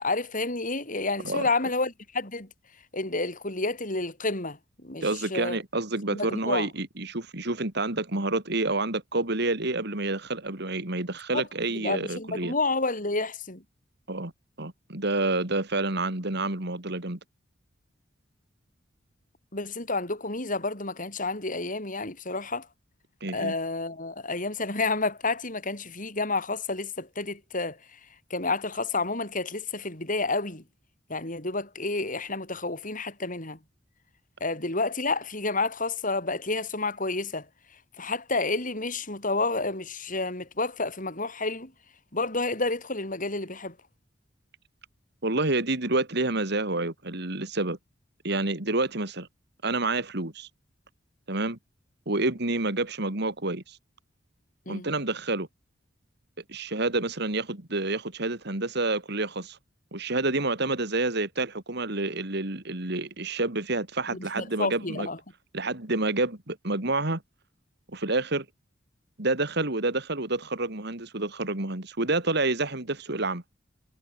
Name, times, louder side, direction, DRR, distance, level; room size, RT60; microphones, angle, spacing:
voice 1, 0.0-2.5 2.9-5.6 6.1-6.7 11.3-11.4 11.8-13.6 19.5-22.7 23.3-27.8 28.3-30.6 31.1-33.6 34.4-37.5 38.0-41.7 42.1-43.8 54.7-54.9 64.1-65.2, left 3 dB, 45° left, 7.4 m, -30 dB
voice 2, 5.0-12.5 14.1-14.3 14.6-17.2 23.2-23.5 45.2-47.8 48.2-49.3 49.6-50.5 51.3-51.6 52.1-53.8 54.7-55.5 56.5-59.6 59.9-65.1 65.5-67.2 67.9-68.5 69.2-73.4, right 2 dB, 60° right, 3.1 m, -28 dB
head